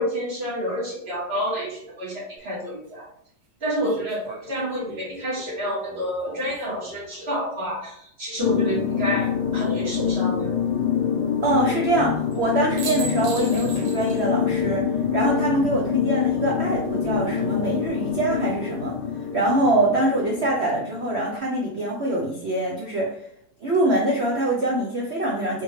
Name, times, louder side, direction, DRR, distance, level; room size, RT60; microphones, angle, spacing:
voice 1, 0.0-3.0 3.6-10.5, equal, 35° right, -6 dB, 1.9 m, -29 dB
sound 1, 2.4-2.5 3.8-7.1 8.9-9.5 12.3-12.5 12.8-14.3 14.6-14.7 17.1-17.6, right 3 dB, 85° right, 1.7 m, -39 dB
sound 2, 8.4-21.3, left 7 dB, 70° left, 1.3 m, -25 dB
voice 2, 11.4-19.0 19.3-23.3 23.6-25.6, right 1 dB, 65° right, -2 dB, 0.6 m, -24 dB
4.4 x 3.5 x 3.1 m, 0.70 s
omnidirectional pair, 2.1 m